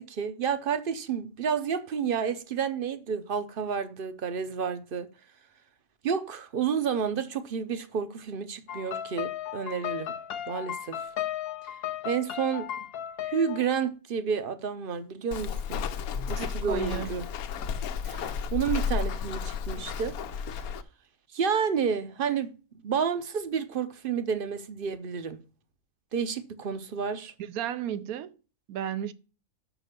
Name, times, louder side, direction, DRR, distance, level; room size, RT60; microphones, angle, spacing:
voice 1, 0.0-5.1 6.0-10.1 10.5-11.1 12.0-12.7 13.2-15.8 16.3-17.2 18.0-20.2 21.3-22.5 22.8-25.4 26.1-27.3, right 6 dB, 50° right, 0.7 m, -30 dB
sound 1, 8.7-13.7, left 11 dB, 60° left, 0.6 m, -35 dB
Walk footsteps, 15.3-20.8, left 6 dB, 85° left, 1.2 m, -32 dB
voice 2, 16.4-17.1 27.4-28.4 28.7-29.1, right 10 dB, 85° right, 1.1 m, -33 dB
6.0 x 5.2 x 6.6 m
omnidirectional pair, 1.5 m